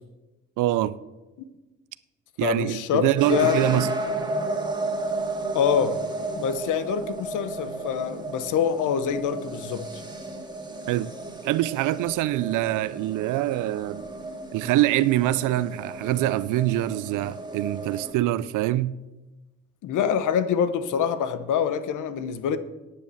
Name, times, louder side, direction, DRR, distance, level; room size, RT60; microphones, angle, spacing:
voice 1, 0.6-1.0 2.4-3.9 10.9-11.1 11.4-14.1 14.5-18.9, right 15 dB, 85° right, 0.5 m, -24 dB
voice 2, 2.4-3.9 5.5-6.0 6.4-9.9 19.8-22.6, left 8 dB, 80° left, 1.0 m, -25 dB
sound 1, 3.2-18.1, right 2 dB, 15° right, 1.9 m, -33 dB
9.9 x 7.9 x 7.7 m
cardioid pair, 90°, 30 cm